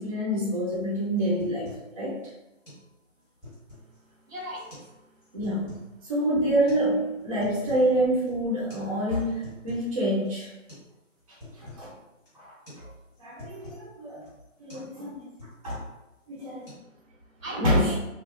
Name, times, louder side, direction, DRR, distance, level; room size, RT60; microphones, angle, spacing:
voice 1, 0.0-2.2 5.3-5.7 6.0-10.5 11.6-11.9 12.3-12.9 13.2-14.2 14.6-15.3 15.6-15.8 16.3-16.7 17.5-18.0, right 1 dB, 25° right, -6 dB, 0.6 m, -27 dB
sound 1, 0.7-0.9 1.2-1.9 2.2-2.3 2.6-2.8 3.2-4.0 4.6-4.9 5.2-5.9 6.7-6.8 7.2-7.9 8.2-8.3 8.7-8.9 9.2-9.9 10.2-10.3 10.7-10.9 11.2-11.9 12.2-12.4 12.7-12.8 13.1-13.9 14.2-14.4 14.7-14.9 15.2-16.0 16.3-16.7, left 1 dB, ahead, 0.9 m, -46 dB
voice 2, 4.0-5.1 16.8-18.0, right 1 dB, 85° right, -1 dB, 1.3 m, -41 dB
3.0 x 2.2 x 3.7 m, 0.98 s
hypercardioid pair, 165°, 39 cm